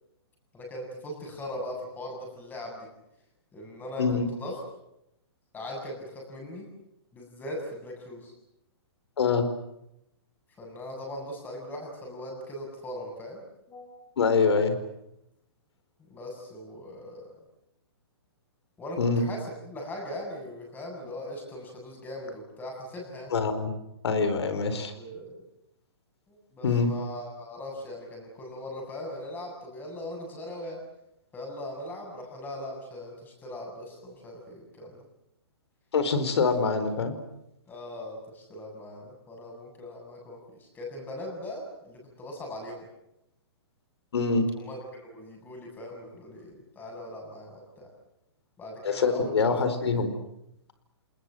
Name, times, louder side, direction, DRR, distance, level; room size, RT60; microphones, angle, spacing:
voice 1, 0.5-2.9 3.5-4.6 5.5-6.7 7.1-8.3 10.6-14.0 16.1-17.3 18.8-23.3 24.5-24.7 25.0-25.4 26.3-30.8 31.3-35.0 36.4-36.5 36.8-36.9 37.7-42.8 44.6-47.9 48.6-49.4, left 1 dB, 15° left, 1 dB, 7.9 m, -40 dB
voice 2, 4.0-4.3 9.2-9.5 14.2-14.8 19.0-19.2 23.3-23.7 24.0-24.9 26.6-26.9 35.9-37.2 44.1-44.5 48.8-50.1, left 4 dB, 75° left, 10 dB, 4.5 m, -24 dB
28.5 x 20.5 x 7.9 m, 0.84 s
hypercardioid pair, 150°, 14 cm